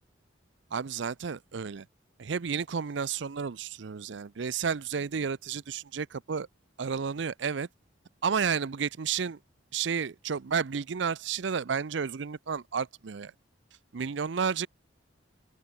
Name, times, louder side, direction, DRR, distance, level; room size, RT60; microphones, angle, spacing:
voice 1, 0.7-1.9 2.2-6.5 6.8-7.7 8.2-9.4 9.7-13.3 13.9-14.7, right 6 dB, 65° right, 0.5 m, -31 dB
open air
head